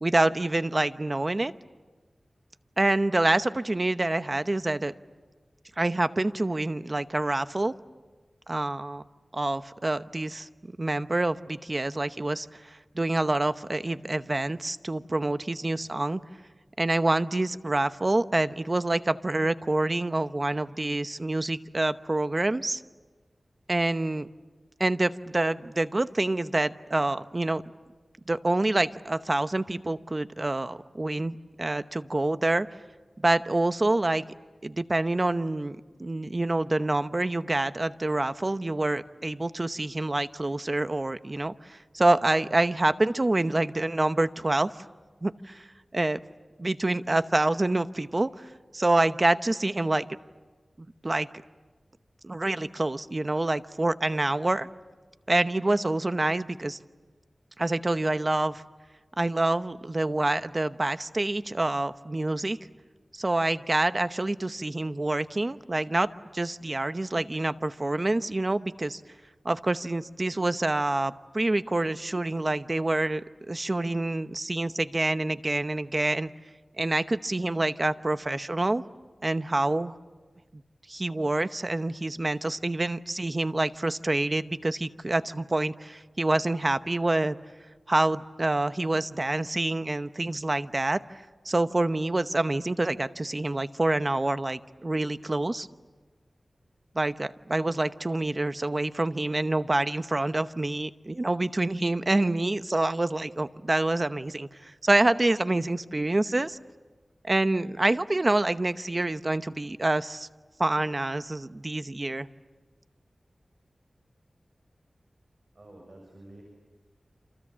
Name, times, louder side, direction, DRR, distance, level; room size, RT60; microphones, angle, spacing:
voice 1, 0.0-1.5 2.8-4.9 5.8-7.7 8.5-9.0 9.3-16.2 16.8-22.8 23.7-24.3 24.8-27.6 28.3-32.7 33.2-34.3 34.6-44.7 45.2-45.6 45.9-46.2 46.6-50.1 51.0-51.3 52.2-54.7 55.3-56.8 57.6-58.6 59.2-62.6 63.1-66.1 66.3-69.0 69.4-76.3 76.8-78.8 79.2-79.9 80.5-80.6 80.9-87.4 87.9-91.0 91.4-95.7 96.9-106.6 107.2-110.3 110.6-112.3, right 2 dB, 35° right, 12 dB, 0.9 m, -27 dB
voice 2, 115.5-116.4, right 1 dB, 55° right, 1 dB, 6.7 m, -49 dB
29.0 x 27.0 x 7.5 m, 1.3 s
wide cardioid pair, 70°, 0 cm